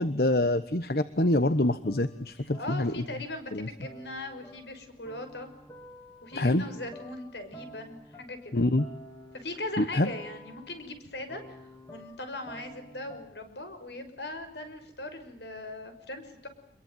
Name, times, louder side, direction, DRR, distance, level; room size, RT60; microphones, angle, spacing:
voice 1, 0.0-3.0 3.5-3.7 6.4-6.6 8.5-8.9 9.8-10.1, left 1 dB, 60° left, 13 dB, 1.1 m, -26 dB
sound 1, 1.2-3.4 3.8-13.5, equal, 20° left, 2.6 m, -50 dB
voice 2, 2.6-5.5 6.2-8.6 9.3-11.4 11.9-16.5, left 2 dB, 80° left, 8 dB, 6.0 m, -39 dB
26.5 x 22.5 x 9.2 m, 0.67 s
head